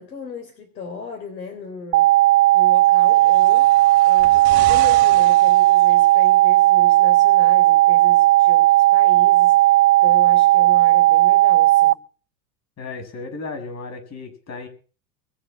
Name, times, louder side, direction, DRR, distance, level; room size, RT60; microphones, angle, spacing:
voice 1, 0.0-2.1 2.5-3.7 4.0-12.0, left 4 dB, 85° left, 4 dB, 3.8 m, -36 dB
sound 1, 1.9-11.9, right 16 dB, 70° right, 0.9 m, -15 dB
sound 2, 3.0-6.4 7.3-7.4, right 14 dB, 50° right, 3.0 m, -36 dB
voice 2, 12.8-14.7, left 3 dB, 30° left, 6 dB, 7.0 m, -34 dB
21.5 x 8.0 x 7.6 m, 0.39 s
hypercardioid pair, 85°, 50 cm